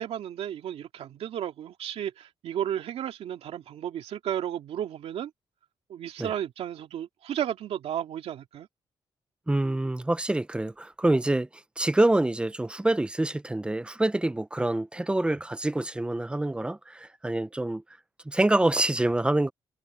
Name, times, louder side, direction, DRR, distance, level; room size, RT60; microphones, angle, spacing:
voice 1, 0.0-5.3 5.9-8.7, right 10 dB, 80° right, 2.4 m, -33 dB
voice 2, 9.5-11.5 11.8-17.8 18.3-19.5, right 2 dB, 10° right, 0.8 m, -26 dB
cardioid pair, 120°, 10 cm